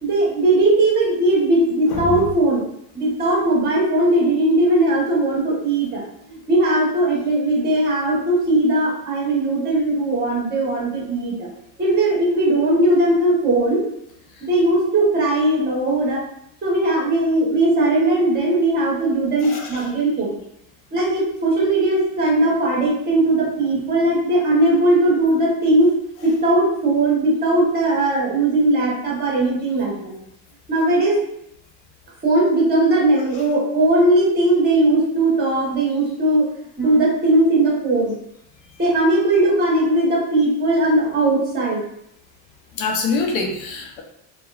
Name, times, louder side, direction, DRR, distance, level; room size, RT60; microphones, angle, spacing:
voice 1, 0.0-2.6 2.9-6.0 6.3-11.4 11.8-13.8 14.4-16.2 16.6-20.3 20.9-25.9 26.2-30.1 30.7-31.2 32.2-36.5 36.8-38.1 38.8-41.8, right 2 dB, 20° right, -5 dB, 1.1 m, -18 dB
voice 2, 1.9-2.2 19.4-19.8 42.8-44.0, left 4 dB, 65° left, 1 dB, 0.7 m, -25 dB
2.8 x 2.2 x 2.3 m, 0.77 s
supercardioid pair, 120°, 46 cm